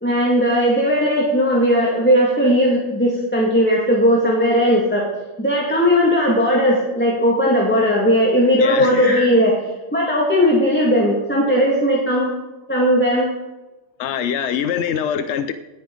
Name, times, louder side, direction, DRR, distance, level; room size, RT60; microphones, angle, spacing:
voice 1, 0.0-5.1 5.4-9.6 9.9-12.3 12.7-13.3, equal, 10° left, 2.1 m, -17 dB
voice 2, 8.6-9.0 14.0-15.5, left 8 dB, 75° left, 0.9 m, -23 dB
18.5 x 10.0 x 3.9 m
omnidirectional pair, 1.2 m